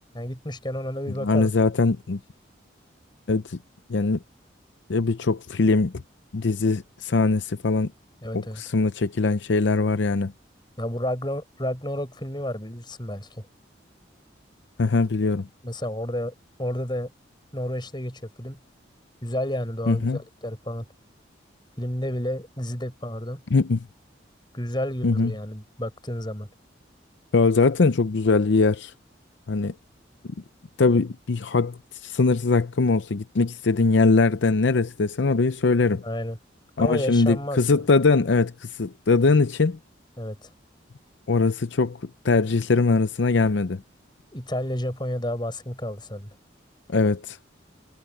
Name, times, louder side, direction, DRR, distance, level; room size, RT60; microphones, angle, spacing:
voice 1, 0.1-1.5 8.2-8.6 10.8-13.4 15.6-17.1 17.5-18.6 19.2-20.9 21.8-23.4 24.5-26.5 36.0-36.4 36.8-37.8 40.2-40.5 44.3-46.3, left 1 dB, 25° left, 6.4 m, -31 dB
voice 2, 1.2-2.2 3.3-3.6 3.9-4.2 4.9-5.9 6.3-7.9 8.3-10.3 14.8-15.5 19.9-20.2 23.5-23.8 25.0-25.3 27.3-28.9 29.5-29.7 30.8-36.0 36.8-39.8 41.3-42.0 42.2-43.8 46.9-47.4, left 3 dB, 70° left, 0.6 m, -21 dB
head